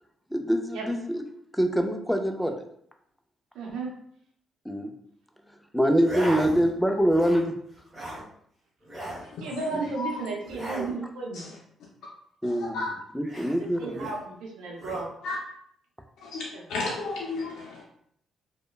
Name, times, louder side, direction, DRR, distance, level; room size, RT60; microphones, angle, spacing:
voice 1, 0.3-1.2 1.5-2.6 4.6-4.9 5.4-7.5 9.7-9.9 12.4-14.0, equal, ahead, 4 dB, 0.3 m, -25 dB
voice 2, 3.5-3.9 9.4-11.5 13.8-15.1 16.5-16.7, right 4 dB, 90° right, 0 dB, 0.6 m, -33 dB
sound 1, 6.0-6.7 7.0-7.5 7.8-8.2 8.8-9.3 10.4-11.0 13.2-14.2 14.8-15.1, right 1 dB, 25° right, 1.2 m, -36 dB
voice 3, 16.2-17.8, left 3 dB, 85° left, -4 dB, 0.5 m, -33 dB
3.0 x 2.1 x 2.2 m, 0.68 s
cardioid pair, 100°, 0 cm